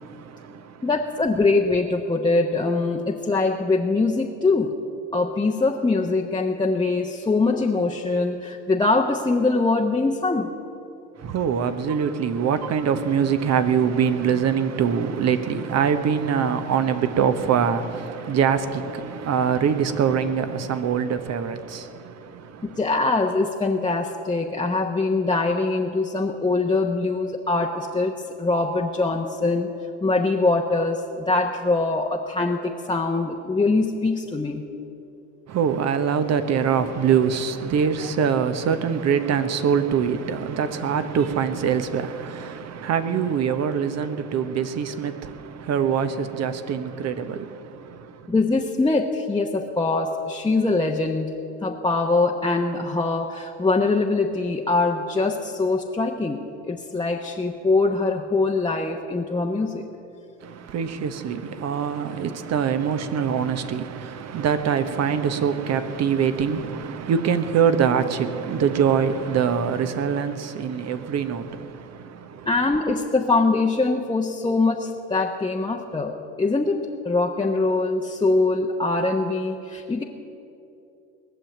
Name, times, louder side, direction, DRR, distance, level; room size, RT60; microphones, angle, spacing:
voice 1, 0.0-0.9 11.2-22.8 35.5-48.3 60.4-72.5, right 7 dB, 45° right, 1.2 m, -24 dB
voice 2, 0.8-4.7 5.1-10.5 22.7-28.1 28.4-29.7 30.0-34.6 48.3-51.3 51.6-59.8 72.4-80.0, left 3 dB, 10° left, 1.1 m, -23 dB
19.5 x 7.2 x 9.3 m
hypercardioid pair, 70°, 37 cm